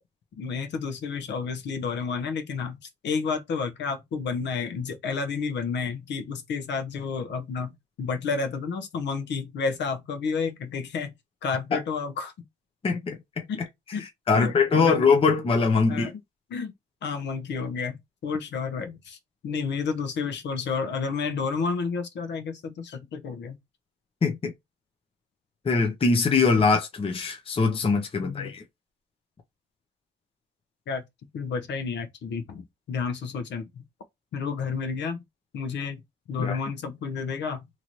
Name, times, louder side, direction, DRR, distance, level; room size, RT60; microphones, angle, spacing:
voice 1, 0.3-2.8 3.0-11.1 11.4-12.3 13.5-13.6 13.9-14.0 14.3-15.0 15.9-16.1 16.5-16.7 17.0-19.2 19.4-23.6 28.2-28.5 30.9-31.0 31.3-33.8 34.3-35.2 35.5-36.0 36.3-37.7, left 5 dB, 65° left, 0.8 m, -31 dB
voice 2, 12.8-13.5 14.0-16.1 24.2-24.5 25.6-28.6 36.4-36.6, left 4 dB, 30° left, 0.6 m, -22 dB
2.9 x 2.6 x 3.0 m
cardioid pair, 90°, 20 cm